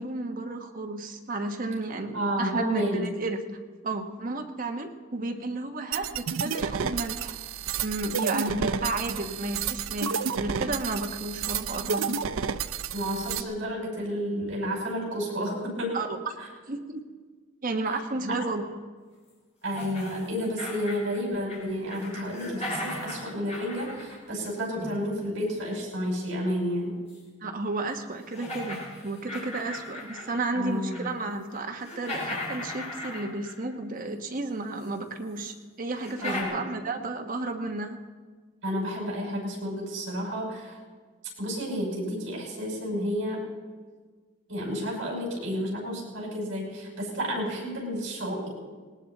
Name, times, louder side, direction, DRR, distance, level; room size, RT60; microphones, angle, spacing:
voice 1, 0.0-3.4 3.8-7.4 7.8-12.2 15.9-16.1 16.7-17.0 17.6-18.7 27.4-38.0, right 2 dB, 45° right, 4 dB, 1.2 m, -32 dB
voice 2, 2.1-3.1 8.6-8.8 12.9-16.0 18.2-18.4 19.6-26.9 30.5-31.1 36.2-36.7 38.6-40.8 41.4-43.5 44.5-48.5, equal, 65° right, -2 dB, 5.6 m, -31 dB
sound 1, 5.9-13.4, right 6 dB, 85° right, 0.6 m, -31 dB
sound 2, 19.7-21.6 21.9-25.0 27.1-27.2 27.8-27.9 28.3-30.4 30.8-31.2 31.5-33.7 34.8-34.9 35.4-35.5 36.0-36.4, left 2 dB, 35° left, 4.1 m, -37 dB
19.0 x 18.5 x 4.0 m, 1.5 s
head